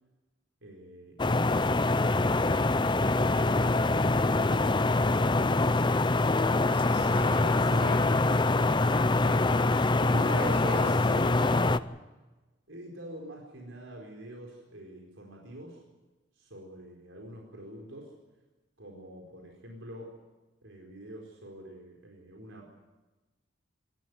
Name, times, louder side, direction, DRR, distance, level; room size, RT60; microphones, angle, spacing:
sound 1, 1.2-11.8, left 2 dB, 25° left, 0.6 m, -24 dB
voice 1, 6.3-11.7, equal, 60° right, -3 dB, 5.9 m, -39 dB
voice 2, 12.7-15.8 16.3-18.1 18.8-20.2 20.6-22.7, right 1 dB, 80° right, 0 dB, 4.4 m, -47 dB
26.5 x 13.5 x 9.4 m, 1.1 s
head